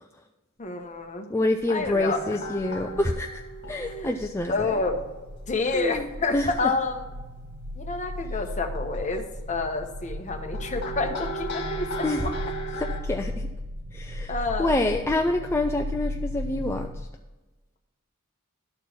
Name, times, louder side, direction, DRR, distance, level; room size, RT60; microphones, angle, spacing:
voice 1, 0.6-1.3 1.7-2.2 3.8-4.1 4.5-5.0 5.5-7.1 7.8-12.3 14.3-14.8, left 3 dB, 35° left, 4 dB, 1.0 m, -29 dB
voice 2, 1.3-3.4 3.7-4.7 5.7-6.1 6.3-6.7 12.0-12.3 12.8-13.5 13.9-17.1, left 2 dB, 10° left, 3 dB, 0.4 m, -27 dB
sound 1, 1.6-17.1, left 1 dB, 80° right, 0.9 m, -36 dB
sound 2, 2.0-4.3 4.7-5.2 7.4-7.5 8.6-9.2 9.8-13.0, right 1 dB, 55° left, 1.9 m, -36 dB
11.5 x 4.5 x 6.0 m, 1.1 s
head